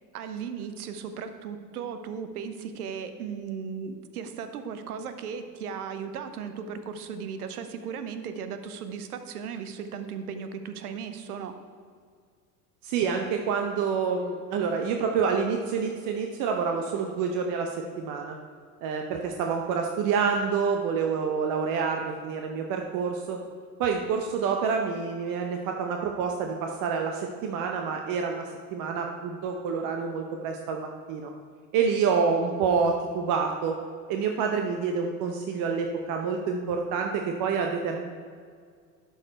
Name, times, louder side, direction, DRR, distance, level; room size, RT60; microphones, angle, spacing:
voice 1, 0.1-11.6, right 6 dB, 70° right, 9 dB, 0.9 m, -36 dB
voice 2, 12.8-18.4 18.8-23.4 23.8-31.3 31.7-33.8 34.1-38.0, right 5 dB, 45° right, 3 dB, 0.8 m, -28 dB
11.5 x 4.7 x 4.3 m, 2.1 s
figure-of-eight pair, 75°, 46 cm